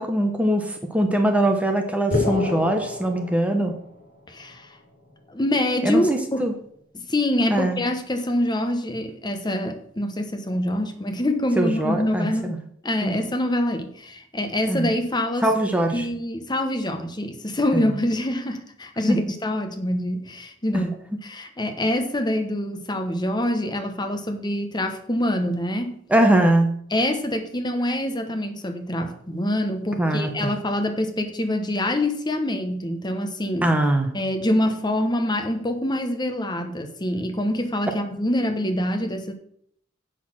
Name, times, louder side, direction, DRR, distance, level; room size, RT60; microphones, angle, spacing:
voice 1, 0.0-3.8 5.8-6.5 7.5-7.8 11.6-12.3 13.0-13.2 14.7-14.9 15.4-16.0 17.7-17.9 19.1-19.2 26.1-26.7 30.0-30.3 33.6-34.1, right 1 dB, 5° right, 4 dB, 0.9 m, -21 dB
sound 1, 2.1-4.0, left 3 dB, 50° left, 2.9 m, -27 dB
voice 2, 4.3-4.8 5.3-6.5 6.9-15.5 15.9-21.0 21.2-26.0 26.9-33.7 34.1-39.3, left 1 dB, 20° left, 6 dB, 1.0 m, -25 dB
8.1 x 6.3 x 6.2 m, 0.66 s
head